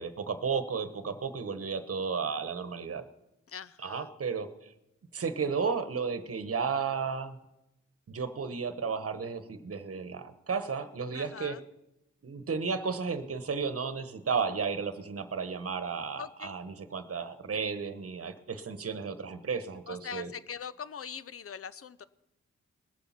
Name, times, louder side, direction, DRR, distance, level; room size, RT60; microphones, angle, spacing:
voice 1, 0.0-3.0 3.8-4.7 5.1-7.4 8.1-11.6 12.2-20.3, right 5 dB, 50° right, 11 dB, 1.2 m, -33 dB
voice 2, 3.5-4.1 11.1-11.6 16.2-16.6 19.9-22.0, left 7 dB, 50° left, 17 dB, 0.7 m, -42 dB
19.5 x 7.0 x 5.8 m, 0.89 s
cardioid pair, 60°, 29 cm